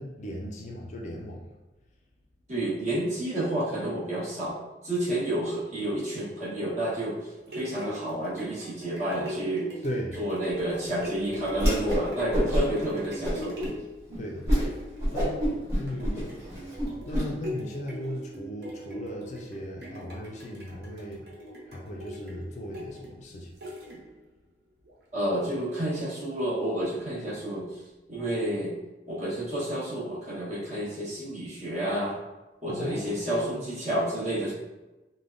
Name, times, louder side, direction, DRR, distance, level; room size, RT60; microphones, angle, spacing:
voice 1, 0.0-1.5 9.8-10.2 14.2-14.7 15.1-16.4 17.0-21.2 21.7-23.5 32.7-33.7, equal, 40° left, -1 dB, 0.3 m, -37 dB
voice 2, 2.5-4.5 4.8-7.2 7.5-9.7 10.2-13.5 25.1-27.7 28.1-28.7 29.1-32.2 32.6-34.5, right 1 dB, 40° right, -8 dB, 1.0 m, -30 dB
sound 1, 7.4-24.3 24.8-24.9, equal, 65° right, 0.6 m, -42 dB
Whoosh swoosh swish, 11.5-12.0 12.3-12.8 13.2-13.7 14.1-14.2 14.5-14.7 15.0-17.2, equal, 15° right, 1.1 m, -26 dB
3.3 x 2.1 x 2.5 m, 1.1 s
head